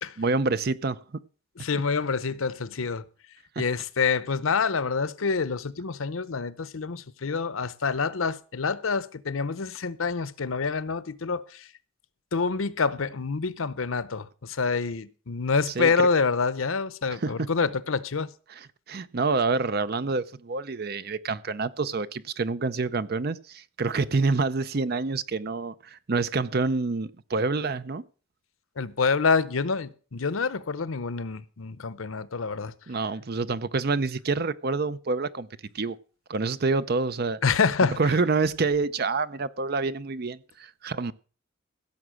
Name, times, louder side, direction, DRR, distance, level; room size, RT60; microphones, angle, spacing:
voice 1, 0.2-1.0 15.8-16.1 17.1-17.5 18.5-28.0 32.9-35.5 35.7-36.0 36.3-37.4 38.0-41.1, right 3 dB, 50° right, 0.6 m, -27 dB
voice 2, 1.6-3.0 3.6-11.7 12.3-18.3 28.8-32.7 37.4-38.0, left 5 dB, 85° left, 0.8 m, -27 dB
16.0 x 7.2 x 6.3 m
head